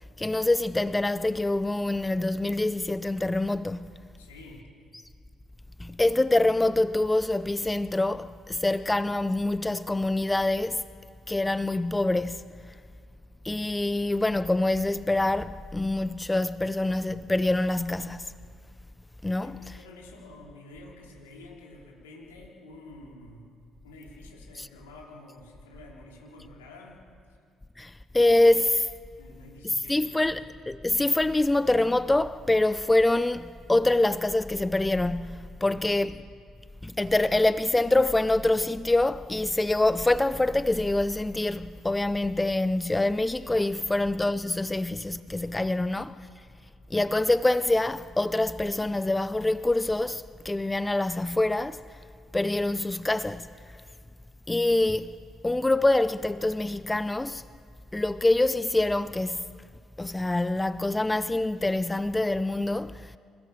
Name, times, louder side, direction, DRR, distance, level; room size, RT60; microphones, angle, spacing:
voice 1, 0.2-3.9 5.8-10.8 11.3-12.5 13.4-18.3 19.2-19.6 24.6-24.7 27.8-28.9 29.9-36.1 36.8-46.2 46.9-51.8 52.3-53.5 54.5-55.2 55.4-57.4 57.9-59.5 60.0-63.1, left 2 dB, 15° left, 0.6 m, -25 dB
voice 2, 4.2-4.7 19.4-27.0 29.2-30.4 35.6-35.9 43.8-44.1 45.5-45.9, left 2 dB, 85° left, 3.8 m, -49 dB
26.5 x 17.0 x 6.7 m
hypercardioid pair, 50°, 0 cm